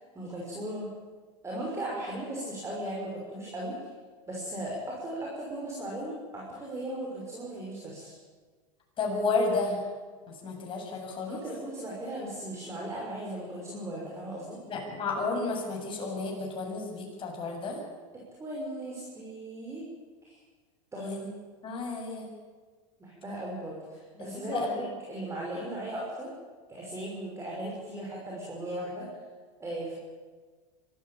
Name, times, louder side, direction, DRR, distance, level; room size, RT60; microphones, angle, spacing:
voice 1, 0.1-0.9 1.4-3.8 4.3-8.2 11.3-14.6 18.1-19.9 20.2-20.4 20.9-21.1 23.0-26.3 26.7-29.1 29.6-30.0, right 1 dB, 15° right, -4 dB, 6.1 m, -37 dB
voice 2, 9.0-9.8 10.3-11.4 14.7-17.8 21.0-21.3 21.6-22.3 24.2-24.8, left 3 dB, 30° left, 0 dB, 7.7 m, -32 dB
23.5 x 15.0 x 8.9 m, 1.5 s
supercardioid pair, 115°, 17 cm